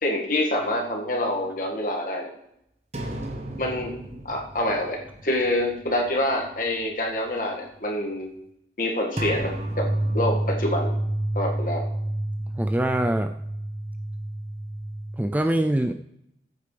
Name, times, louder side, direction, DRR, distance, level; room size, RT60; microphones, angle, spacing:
voice 1, 0.0-2.3 3.6-3.9 4.3-8.3 8.8-9.8 10.1-11.0 11.3-11.8, left 1 dB, 50° left, 0 dB, 1.9 m, -26 dB
sound 1, 2.9-6.1 6.4-6.5 9.2-15.2, right 1 dB, 40° right, 1.3 m, -30 dB
voice 2, 12.6-13.3 15.2-15.9, right 1 dB, 10° right, 6 dB, 0.3 m, -23 dB
14.5 x 8.3 x 3.4 m, 0.78 s
head